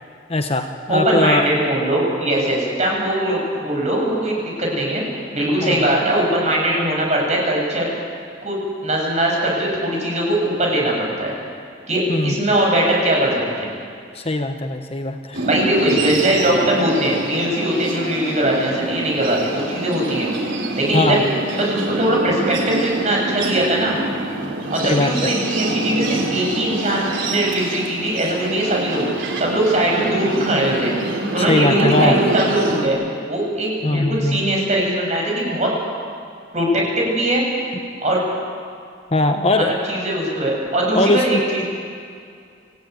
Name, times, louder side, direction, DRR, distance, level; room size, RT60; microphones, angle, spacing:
voice 1, 0.3-1.5 5.6-5.8 12.1-12.4 14.1-15.4 20.9-21.2 24.8-25.3 31.4-32.2 33.8-34.4 39.1-39.8 40.9-41.4, left 2 dB, 30° left, 5 dB, 1.1 m, -20 dB
voice 2, 0.9-5.1 5.3-7.9 8.4-11.3 11.9-13.7 15.4-21.2 21.5-24.0 24.7-29.0 29.4-30.9 31.3-33.0 33.3-35.7 36.5-37.5 38.0-38.2 39.5-41.6, right 1 dB, 40° right, -2 dB, 7.3 m, -20 dB
sound 1, 15.3-32.9, right 2 dB, 85° right, 3.6 m, -25 dB
27.5 x 16.0 x 9.5 m, 2.3 s
head